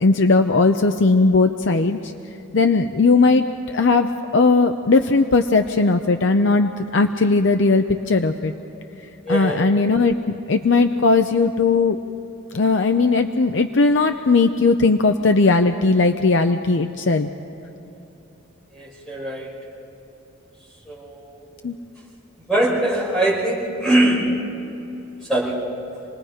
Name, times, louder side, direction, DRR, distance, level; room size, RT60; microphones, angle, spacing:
voice 1, 0.0-2.1 2.5-8.5 9.3-10.1 10.5-12.0 12.5-17.3 21.6-21.8, left 3 dB, 65° left, 6 dB, 0.6 m, -18 dB
voice 2, 9.2-9.6 18.7-19.5 20.9-21.4 22.5-24.2 25.3-25.6, right 1 dB, ahead, -6 dB, 5.5 m, -21 dB
28.0 x 19.5 x 5.0 m, 3.0 s
head